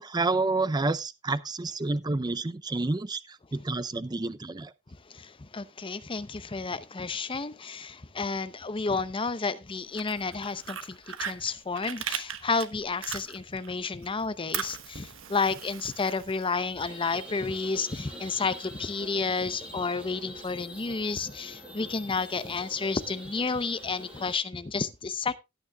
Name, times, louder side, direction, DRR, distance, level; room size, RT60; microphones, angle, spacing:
voice 1, 0.0-4.7, right 3 dB, 20° right, 0.5 m, -29 dB
voice 2, 5.1-25.4, left 4 dB, 25° left, 0.7 m, -31 dB
Fire, 9.8-13.7 14.0-16.8, right 8 dB, 75° right, 1.0 m, -38 dB
sound 1, 16.8-24.3, equal, 5° right, 6.8 m, -44 dB
16.5 x 9.2 x 2.3 m
head